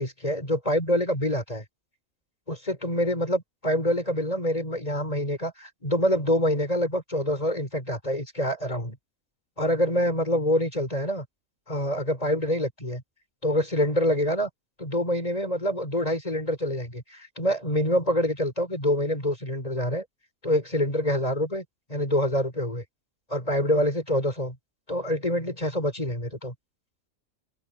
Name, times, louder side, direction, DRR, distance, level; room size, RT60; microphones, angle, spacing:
voice 1, 0.0-1.6 2.5-9.0 9.6-11.3 11.7-13.0 13.4-14.5 14.8-20.0 20.4-22.8 23.3-24.6 24.9-26.5, equal, 30° left, 4.6 m, -26 dB
open air
omnidirectional pair, 1.4 m